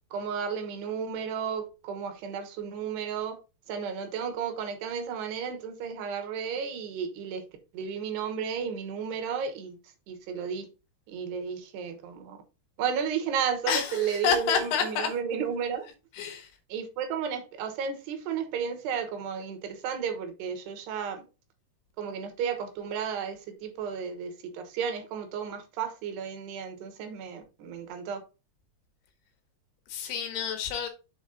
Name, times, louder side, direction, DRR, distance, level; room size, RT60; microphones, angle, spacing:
voice 1, 0.1-3.4 3.7-7.4 7.7-9.8 10.1-10.7 11.1-12.4 12.8-15.9 16.7-21.3 22.0-28.2, right 7 dB, 90° right, 3.4 m, -33 dB
voice 2, 13.7-15.1 16.2-16.5 29.9-30.9, left 7 dB, 80° left, 3.3 m, -28 dB
7.1 x 4.7 x 3.9 m
omnidirectional pair, 4.7 m